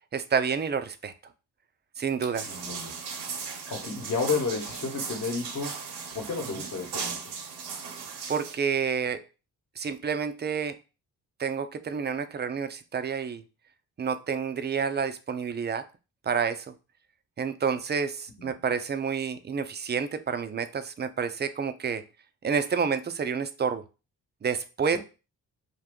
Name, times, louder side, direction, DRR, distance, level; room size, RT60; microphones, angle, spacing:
voice 1, 0.1-1.1 2.0-2.5 6.6-6.7 8.3-9.2 9.8-10.8 11.4-13.4 14.0-15.8 16.2-16.7 17.4-22.0 22.4-23.8 24.4-25.0, right 6 dB, 25° right, 0.4 m, -29 dB
sound 1, 2.3-8.6, right 5 dB, 80° right, 0.7 m, -37 dB
voice 2, 2.4-2.9 3.7-7.2 18.4-18.5 24.9-25.0, left 4 dB, 45° left, 1.0 m, -32 dB
2.6 x 2.2 x 3.6 m
supercardioid pair, 60°, 40 cm